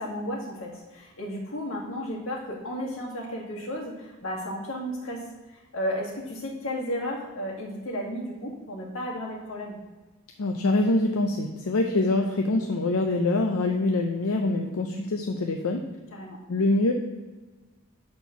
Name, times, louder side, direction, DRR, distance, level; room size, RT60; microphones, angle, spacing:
voice 1, 0.0-9.8 16.1-16.4, equal, 65° left, -1 dB, 1.9 m, -33 dB
voice 2, 10.4-15.8 16.5-16.9, left 2 dB, 80° left, 3 dB, 0.6 m, -24 dB
7.5 x 4.5 x 5.7 m, 1.2 s
head